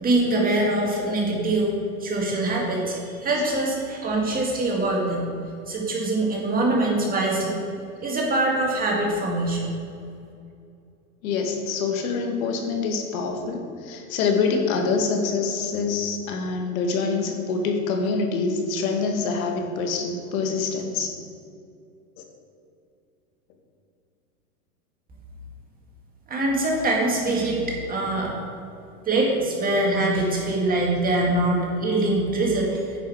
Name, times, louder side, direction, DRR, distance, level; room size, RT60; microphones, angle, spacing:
voice 1, 0.0-1.7 2.0-5.2 5.7-7.6 8.0-9.7 26.3-28.3 29.1-33.0, right 2 dB, 20° right, -1 dB, 1.9 m, -23 dB
voice 2, 11.2-21.1 22.2-22.3, left 4 dB, 60° left, 4 dB, 1.5 m, -25 dB
9.8 x 5.6 x 4.5 m, 2.5 s
hypercardioid pair, 130°, 46 cm